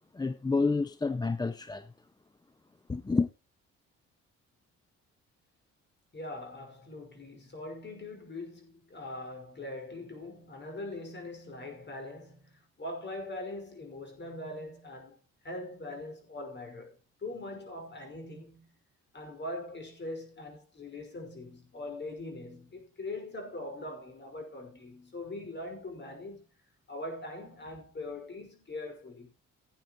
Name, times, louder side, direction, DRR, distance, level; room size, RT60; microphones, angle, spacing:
voice 1, 0.1-1.9 2.9-3.3, left 4 dB, 15° left, 0.6 m, -29 dB
voice 2, 6.1-15.2 15.4-18.8 19.1-26.5 26.9-29.3, left 2 dB, 35° left, 5.6 m, -42 dB
17.0 x 9.0 x 3.1 m
cardioid pair, 90°, 30 cm